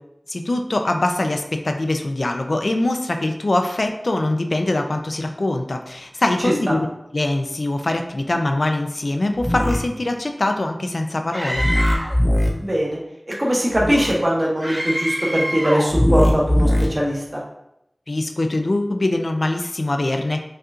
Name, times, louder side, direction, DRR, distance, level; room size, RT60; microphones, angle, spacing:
voice 1, 0.3-6.9 7.1-11.7 18.1-20.4, left 2 dB, 70° left, 5 dB, 0.4 m, -23 dB
voice 2, 6.4-6.8 12.6-13.0 13.3-17.4, equal, 40° right, -4 dB, 1.1 m, -21 dB
sound 1, 9.4-9.8 11.6-12.5 13.7-14.1 15.9-16.9, left 1 dB, 15° left, 0.8 m, -19 dB
Screaming, 11.3-12.2 14.6-16.0, equal, 15° right, 0.7 m, -26 dB
5.3 x 2.5 x 2.4 m, 0.83 s
wide cardioid pair, 50°, 0 cm